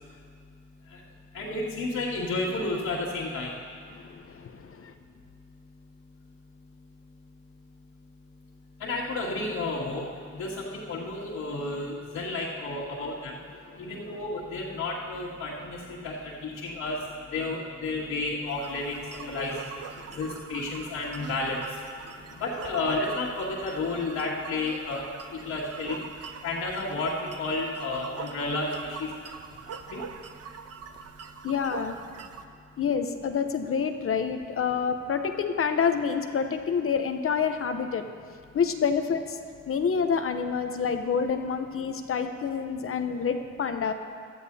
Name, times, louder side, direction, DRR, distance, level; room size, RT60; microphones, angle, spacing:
voice 1, 1.3-3.5 8.8-10.0 10.3-13.3 13.8-17.0 17.3-19.5 20.2-21.6 22.4-25.0 25.4-26.0 26.4-28.7 29.0-29.1 29.9-30.0, left 2 dB, 80° left, -10 dB, 2.4 m, -31 dB
voice 2, 4.0-4.9 13.7-13.9 20.1-20.2 22.0-22.1 31.4-32.0 32.8-38.1 38.5-39.4 39.7-43.9, left 6 dB, 45° left, 7 dB, 0.8 m, -28 dB
sound 1, 18.5-32.4, right 6 dB, 55° right, 0.8 m, -43 dB
18.0 x 12.5 x 2.8 m, 2.2 s
cardioid pair, 90°, 30 cm